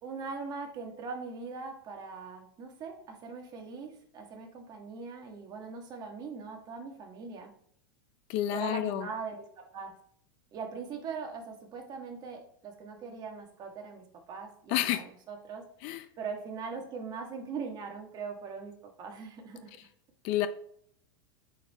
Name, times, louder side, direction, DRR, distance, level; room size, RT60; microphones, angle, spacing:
voice 1, 0.0-7.5 8.5-9.9 10.5-15.6 16.2-19.7, right 5 dB, 35° right, 2 dB, 1.6 m, -41 dB
voice 2, 8.3-9.1 14.7-15.0 15.8-16.0 20.2-20.5, left 13 dB, 45° left, 11 dB, 0.6 m, -29 dB
8.2 x 4.6 x 3.5 m, 0.65 s
supercardioid pair, 130°, 12 cm